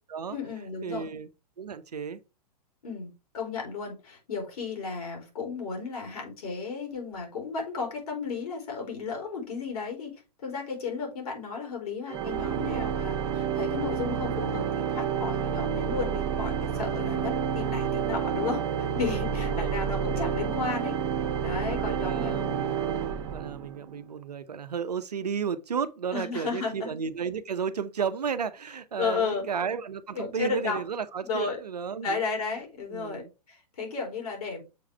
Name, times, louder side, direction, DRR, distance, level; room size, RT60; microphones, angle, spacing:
voice 1, 0.3-1.1 2.8-10.1 10.4-18.6 18.9-20.9 21.4-22.8 26.1-26.9 29.0-29.4 30.1-30.8 31.2-31.6 32.0-33.2 33.5-34.6, left 5 dB, 60° left, 3.9 m, -33 dB
voice 2, 0.8-1.3 1.6-2.2 19.4-20.2 21.7-32.2 32.9-33.3, right 6 dB, 70° right, 0.8 m, -33 dB
Organ, 12.1-23.9, right 7 dB, 45° right, 1.3 m, -29 dB
6.9 x 4.9 x 3.4 m
figure-of-eight pair, 110°, 21 cm